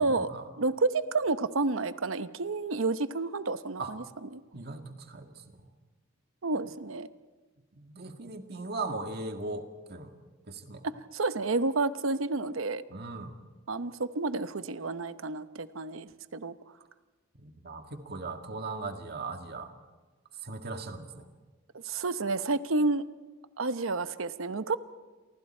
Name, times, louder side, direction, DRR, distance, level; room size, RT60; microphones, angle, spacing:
voice 1, 0.0-0.4 3.8-3.9 4.5-5.4 7.8-10.1 10.5-10.8 12.9-13.3 17.4-19.7 20.4-21.3, right 3 dB, 55° right, 5 dB, 1.9 m, -38 dB
voice 2, 0.6-4.4 6.4-7.1 10.8-12.8 13.7-16.5 21.8-23.0 23.6-24.8, right 3 dB, 90° right, 12 dB, 0.9 m, -30 dB
30.0 x 24.0 x 4.4 m, 1.3 s
head